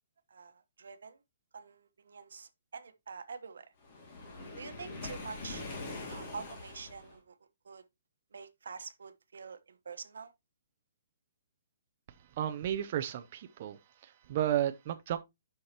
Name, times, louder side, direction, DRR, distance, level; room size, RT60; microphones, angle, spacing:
voice 1, 0.3-1.2 1.5-3.7 4.6-5.6 6.1-7.3 7.6-7.8 8.3-10.3, right 5 dB, 85° right, 1.1 m, -46 dB
Waves surf, 3.8-7.1, left 3 dB, 30° left, 2.1 m, -43 dB
voice 2, 12.4-13.8 14.0-15.2, right 11 dB, 35° right, 0.5 m, -33 dB
9.7 x 5.7 x 2.9 m
hypercardioid pair, 170°, 0 cm